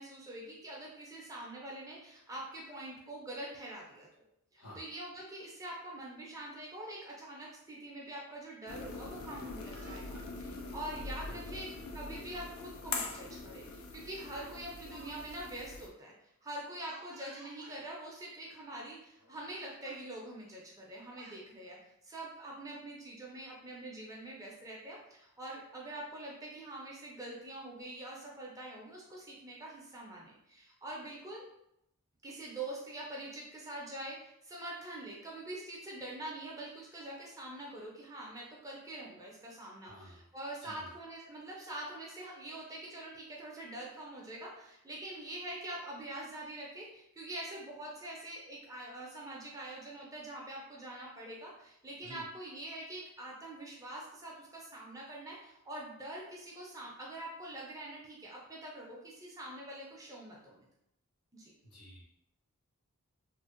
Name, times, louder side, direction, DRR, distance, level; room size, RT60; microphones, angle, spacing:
voice 1, 0.0-4.1 4.5-11.7 11.9-21.8 22.0-31.4 32.2-60.6 61.3-61.5, right 1 dB, 15° right, -3 dB, 0.4 m, -45 dB
sound 1, 8.7-15.9, left 3 dB, 60° left, 0.3 m, -43 dB
Speech, 9.2-10.3 11.2-11.4 12.7-12.8 13.2-13.4 14.3-15.2 15.4-15.6 16.8-17.8 18.7-18.8 19.2-19.5 19.8-20.1 20.8-21.4, right 2 dB, 75° right, 0.5 m, -56 dB
voice 2, 11.2-11.8 39.8-40.3 40.6-40.9 52.0-52.2 61.6-62.0, equal, 85° left, -6 dB, 1.2 m, -52 dB
2.5 x 2.0 x 2.4 m, 0.78 s
head